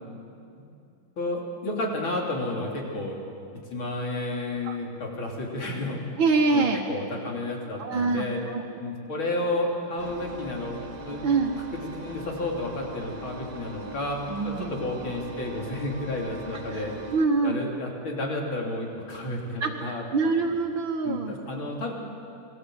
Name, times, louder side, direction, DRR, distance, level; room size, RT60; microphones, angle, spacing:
voice 1, 1.2-3.2 3.7-6.0 6.5-8.4 8.8-11.3 11.7-14.2 14.4-17.0 17.4-20.0 21.0-21.9, left 1 dB, 85° left, -1 dB, 4.1 m, -31 dB
voice 2, 6.2-6.8 7.8-8.6 11.2-11.5 14.3-14.7 16.7-16.9 17.1-17.6 19.6-21.6, right 4 dB, 75° right, -1 dB, 2.3 m, -25 dB
Engine, 10.0-17.3, right 1 dB, 25° right, 1.0 m, -40 dB
28.0 x 22.0 x 7.9 m, 2.5 s
omnidirectional pair, 2.2 m